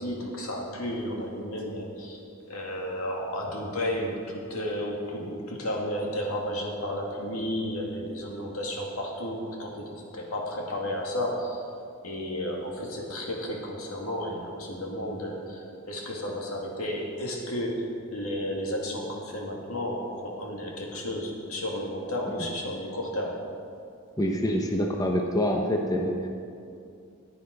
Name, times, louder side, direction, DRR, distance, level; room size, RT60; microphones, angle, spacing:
voice 1, 0.0-2.2 2.5-11.6 12.0-23.4, equal, 80° left, -1 dB, 2.3 m, -32 dB
voice 2, 24.2-26.3, equal, 15° left, 2 dB, 0.8 m, -26 dB
14.0 x 9.7 x 5.3 m, 2.5 s
head